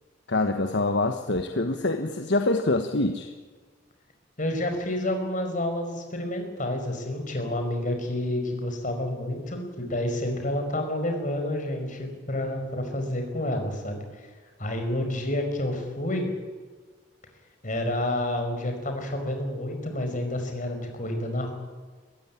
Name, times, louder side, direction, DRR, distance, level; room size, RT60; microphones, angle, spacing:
voice 1, 0.3-3.3, left 2 dB, 65° left, 6 dB, 1.3 m, -25 dB
voice 2, 4.4-14.0 14.6-16.3 17.6-21.5, left 1 dB, 45° left, 4 dB, 5.2 m, -29 dB
22.5 x 15.5 x 9.9 m, 1.4 s
head